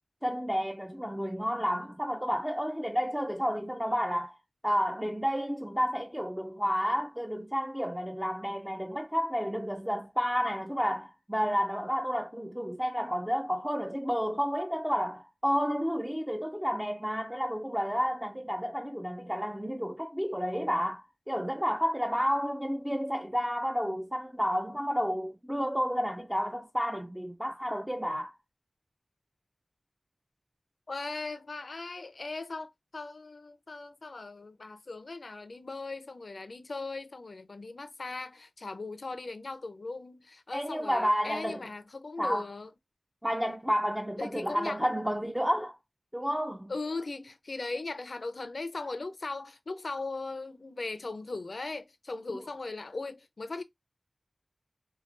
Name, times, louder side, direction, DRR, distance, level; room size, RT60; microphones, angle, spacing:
voice 1, 0.2-4.4 4.6-28.4 40.5-41.6 42.2-42.5 43.2-45.8 46.1-46.7 52.3-52.4, equal, 5° right, 0.5 m, -31 dB
voice 2, 30.9-42.7 44.2-44.8 46.7-53.6, left 3 dB, 75° left, 0.5 m, -38 dB
4.7 x 2.3 x 2.5 m
wide cardioid pair, 60°, 0 cm